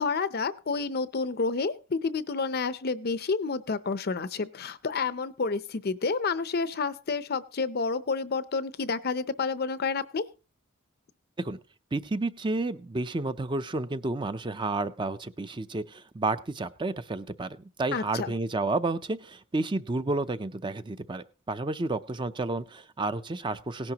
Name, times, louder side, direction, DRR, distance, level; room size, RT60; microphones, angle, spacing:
voice 1, 0.0-10.2 17.9-18.3, left 4 dB, 45° left, 14 dB, 0.6 m, -29 dB
voice 2, 11.9-23.9, right 2 dB, 20° right, 11 dB, 0.5 m, -31 dB
18.0 x 10.5 x 2.9 m, 0.33 s
head